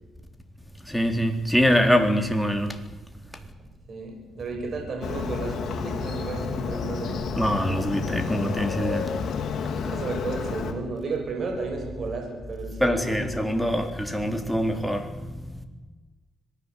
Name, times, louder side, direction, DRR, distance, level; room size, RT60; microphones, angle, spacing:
voice 1, 0.8-2.8 7.4-9.1 12.8-15.6, equal, ahead, 5 dB, 3.9 m, -24 dB
voice 2, 3.9-7.2 9.8-13.6, right 3 dB, 50° right, 3 dB, 7.4 m, -33 dB
Motorcycle, 5.0-10.7, left 5 dB, 65° left, 4.4 m, -30 dB
26.0 x 19.0 x 8.5 m, 1.2 s
cardioid pair, 90°, 0 cm